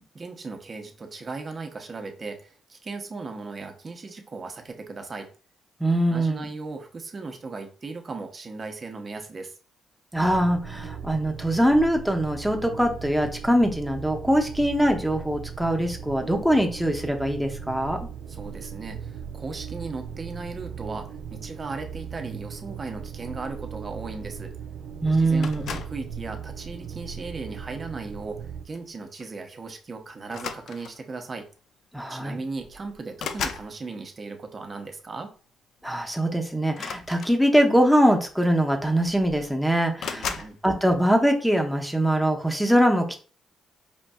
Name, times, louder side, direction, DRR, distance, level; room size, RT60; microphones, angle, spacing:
voice 1, 0.1-5.3 6.1-9.6 18.3-24.5 25.2-31.5 32.1-35.3 40.2-40.6, right 3 dB, 35° right, 5 dB, 0.8 m, -37 dB
voice 2, 5.8-6.5 10.1-18.1 25.0-25.8 31.9-32.4 35.8-43.2, equal, ahead, 2 dB, 0.7 m, -22 dB
sound 1, 10.2-28.7, right 7 dB, 75° right, 0.3 m, -38 dB
sound 2, 25.4-26.0 26.9-27.2 28.7-28.9 29.2-29.4 30.3-31.1 32.1-32.2 32.5-33.7 36.7-37.8 38.7-38.8 39.0-39.5 40.0-40.5, left 6 dB, 70° left, 0.4 m, -35 dB
5.1 x 2.5 x 2.2 m, 0.37 s
cardioid pair, 90°, 0 cm